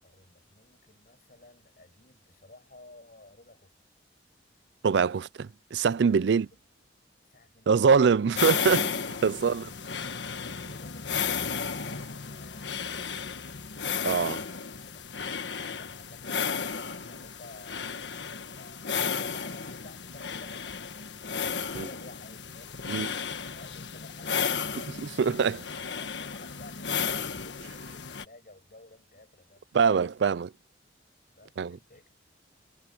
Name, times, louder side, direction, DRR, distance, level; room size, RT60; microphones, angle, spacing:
voice 1, 0.0-3.7 6.2-6.4 7.2-8.1 9.4-10.3 10.7-13.2 14.7-15.1 15.5-21.1 21.5-24.8 25.5-30.3 31.3-32.1, left 2 dB, 50° left, 6.0 m, -54 dB
voice 2, 4.8-6.5 7.7-8.9 9.2-9.7 14.0-14.4 21.8-21.9 22.9-23.1 25.2-25.6 29.7-30.5 31.6-31.8, right 5 dB, 70° right, 0.4 m, -24 dB
sound 1, 8.4-28.2, left 6 dB, 80° left, 1.5 m, -34 dB
head